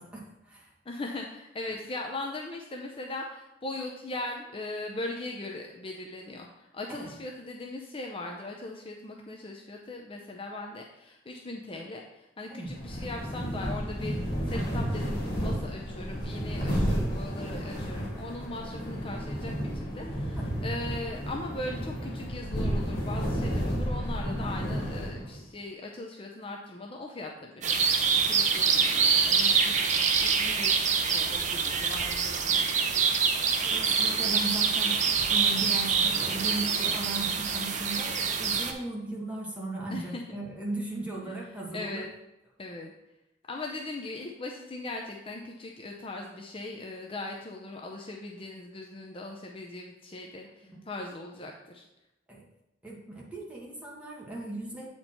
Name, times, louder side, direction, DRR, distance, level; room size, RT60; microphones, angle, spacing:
voice 1, 0.0-0.7 6.9-7.1 12.5-12.7 14.5-14.7 16.6-16.8 20.4-20.5 29.7-29.8 33.1-35.0 35.3-42.0 52.3-52.4 52.8-54.9, right 2 dB, 5° right, -4 dB, 1.6 m, -37 dB
voice 2, 0.9-32.4 39.9-40.4 41.2-41.3 41.7-42.1 42.6-42.9 43.5-51.8, left 2 dB, 30° left, 1 dB, 0.6 m, -39 dB
sound 1, 12.7-25.4, equal, 50° left, 2.3 m, -32 dB
sound 2, 27.6-38.7, right 5 dB, 40° right, 0.6 m, -25 dB
8.0 x 4.4 x 4.4 m, 0.92 s
head